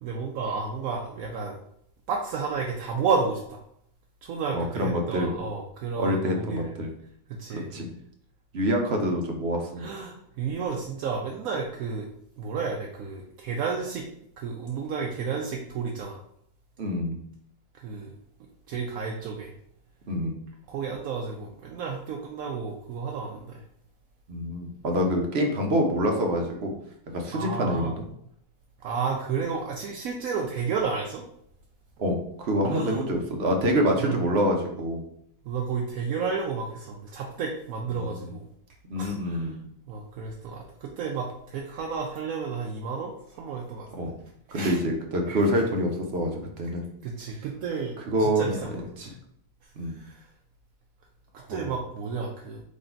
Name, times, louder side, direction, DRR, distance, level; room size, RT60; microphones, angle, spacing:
voice 1, 0.0-1.6 2.1-3.6 4.2-6.7 7.4-7.7 9.8-12.1 12.4-14.0 14.4-16.2 17.8-18.1 18.7-19.5 20.7-23.6 27.3-27.9 28.8-31.2 32.7-33.0 34.0-34.2 35.4-38.5 39.0-39.5 39.9-44.1 44.5-44.8 45.3-45.4 47.0-49.1 50.0-50.2 51.5-52.6, right 5 dB, 75° right, 0 dB, 1.0 m, -32 dB
voice 2, 4.5-5.3 6.0-6.9 7.5-7.9 8.5-9.9 16.8-17.2 20.1-20.4 24.3-26.7 27.1-28.0 32.0-35.0 37.9-38.3 38.9-39.6 43.9-44.1 44.5-46.8 48.0-49.1 49.8-50.0 51.4-51.7, equal, 50° right, 2 dB, 1.0 m, -26 dB
3.9 x 3.1 x 4.3 m, 0.71 s
omnidirectional pair, 1.5 m